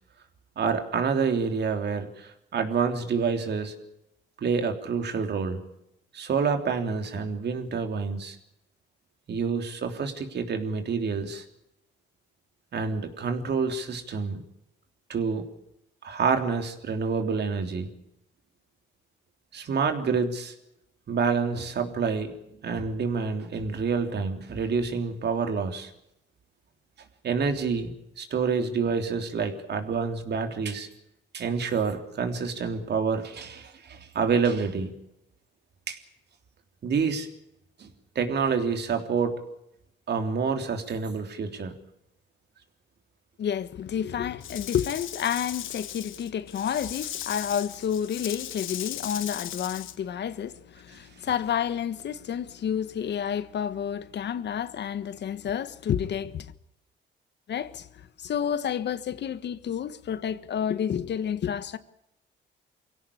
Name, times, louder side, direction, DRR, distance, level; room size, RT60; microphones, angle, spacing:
voice 1, 0.5-3.7 4.4-5.6 6.1-8.4 9.3-11.4 12.7-14.4 15.1-15.4 16.0-17.9 19.5-20.5 21.1-22.3 22.6-25.9 27.2-30.9 31.3-34.9 35.9-36.0 36.8-37.3 37.8-37.9 38.1-39.4 40.1-41.7, right 5 dB, 55° right, 3.4 m, -28 dB
voice 2, 43.4-56.5 57.5-61.8, left 8 dB, 60° left, 1.3 m, -30 dB
Rattle / Rattle (instrument), 44.4-50.0, left 12 dB, 80° left, 1.5 m, -37 dB
24.0 x 17.0 x 8.6 m
cardioid pair, 90°, 20 cm